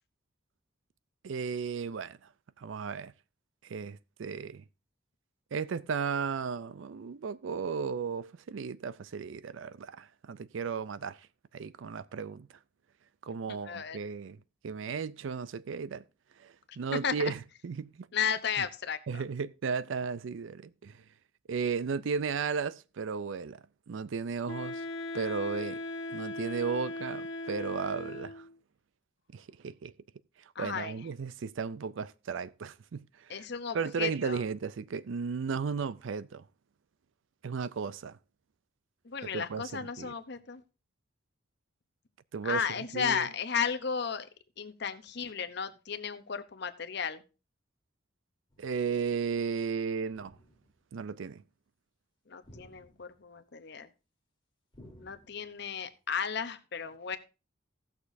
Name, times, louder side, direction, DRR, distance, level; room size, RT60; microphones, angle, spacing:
voice 1, 1.2-2.2 2.6-3.1 3.6-4.6 5.5-11.3 11.5-12.5 13.2-16.0 16.4-18.1 18.6-18.7 19.1-21.0 21.5-23.6 23.9-24.8 25.1-25.8 26.1-28.5 29.3-29.9 30.6-33.5 33.7-36.5 37.4-38.2 39.3-40.1 42.3-43.3 48.6-50.4 50.9-51.4, right 5 dB, 70° right, 0.4 m, -35 dB
voice 2, 13.5-14.0 17.0-17.3 18.1-19.2 30.5-30.9 33.3-34.4 39.0-40.6 42.4-44.3 44.6-47.2 52.3-53.9 55.0-57.2, left 7 dB, 55° left, 0.8 m, -34 dB
Wind instrument woodwind instrument, 24.5-28.6, left 2 dB, 75° left, 1.2 m, -38 dB
sound 1, 48.5-48.9 50.1-50.9 52.4-53.4 54.7-55.7, equal, 25° left, 1.7 m, -56 dB
17.0 x 6.5 x 2.6 m
head